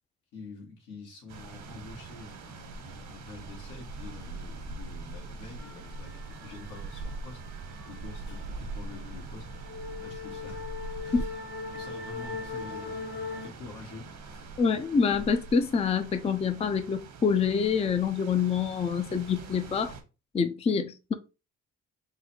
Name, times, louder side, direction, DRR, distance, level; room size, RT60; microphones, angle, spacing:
voice 1, 0.3-7.4 7.9-9.5 10.0-10.7 11.0-11.3 11.7-13.0 13.4-14.5, left 3 dB, 85° left, 1.8 m, -47 dB
sound 1, 1.3-20.0, right 3 dB, 75° right, 1.2 m, -43 dB
sound 2, 4.7-4.9 5.2-13.5, left 4 dB, 40° left, 1.0 m, -41 dB
voice 2, 14.6-20.0 20.3-21.1, left 6 dB, 20° left, 0.4 m, -26 dB
3.8 x 2.2 x 4.3 m
cardioid pair, 90°, 30 cm